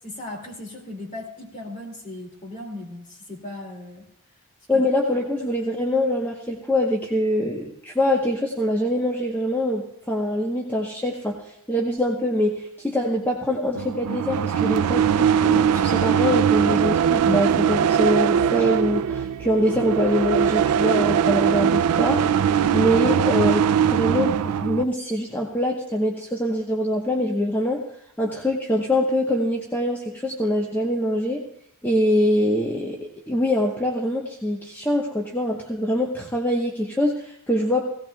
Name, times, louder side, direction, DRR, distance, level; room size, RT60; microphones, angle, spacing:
voice 1, 0.0-4.1 4.7-4.8 22.6-22.8, left 1 dB, 35° left, 1 dB, 2.4 m, -37 dB
voice 2, 4.7-11.4 11.7-22.2 22.7-27.8 28.2-31.4 31.8-37.8, left 1 dB, 10° left, -1 dB, 1.0 m, -24 dB
sound 1, 13.8-24.8, right 8 dB, 90° right, 0.4 m, -21 dB
17.0 x 17.0 x 2.3 m, 0.74 s
head